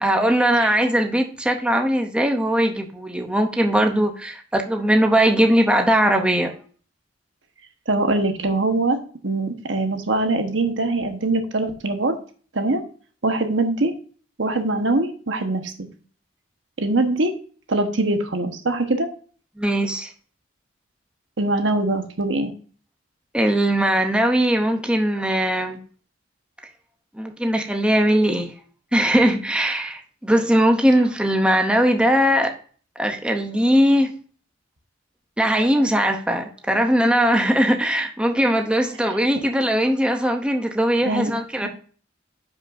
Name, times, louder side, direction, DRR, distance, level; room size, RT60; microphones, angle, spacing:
voice 1, 0.0-6.5 19.6-20.1 23.3-25.8 27.1-28.5 28.9-32.6 33.0-34.1 35.4-41.7, equal, 5° right, 4 dB, 0.7 m, -20 dB
voice 2, 7.9-9.0 9.2-12.1 12.5-12.8 13.2-13.9 14.4-15.6 16.8-17.3 17.7-19.1 21.4-22.5 41.0-41.3 41.6-41.7, right 2 dB, 80° right, 6 dB, 1.2 m, -22 dB
10.5 x 5.5 x 2.6 m, 0.42 s
head